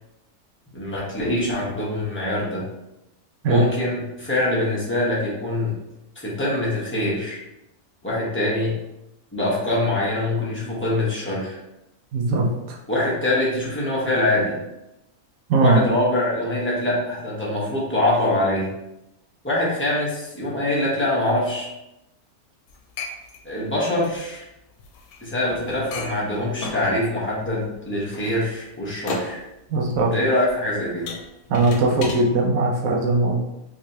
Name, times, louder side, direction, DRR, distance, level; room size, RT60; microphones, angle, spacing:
voice 1, 0.7-2.7 3.4-5.8 6.2-7.4 8.0-8.8 9.3-11.6 12.9-14.6 15.6-18.7 19.4-21.7 23.4-24.4 25.2-29.4 30.0-31.1, left 1 dB, 10° left, -6 dB, 0.8 m, -24 dB
voice 2, 12.1-12.5 15.5-15.8 29.7-30.1 31.5-33.4, right 2 dB, 75° right, -1 dB, 1.1 m, -19 dB
sound 1, 22.7-32.3, left 3 dB, 85° left, 1.1 m, -36 dB
3.6 x 3.1 x 2.8 m, 0.90 s
omnidirectional pair, 1.5 m